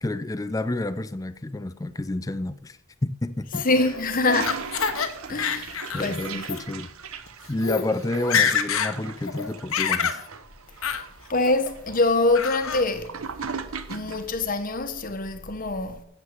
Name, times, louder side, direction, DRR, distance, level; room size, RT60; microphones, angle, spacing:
voice 1, 0.0-2.8 3.0-3.7 5.9-6.9 7.5-10.2, left 2 dB, 15° left, 0.4 m, -29 dB
Laughter, 3.5-5.1 5.4-6.1 6.4-6.6 7.3-7.4 7.6-7.9 8.1-8.9 9.3-10.2 10.8-11.0 11.4-11.9 12.3-12.8, left 7 dB, 75° left, 1.0 m, -26 dB
voice 2, 3.6-4.7 5.3-6.4 11.3-13.2 13.9-16.0, left 2 dB, 40° left, 1.1 m, -25 dB
Toilet flush, 3.6-14.3, right 5 dB, 85° right, 0.9 m, -39 dB
9.6 x 7.4 x 7.3 m
head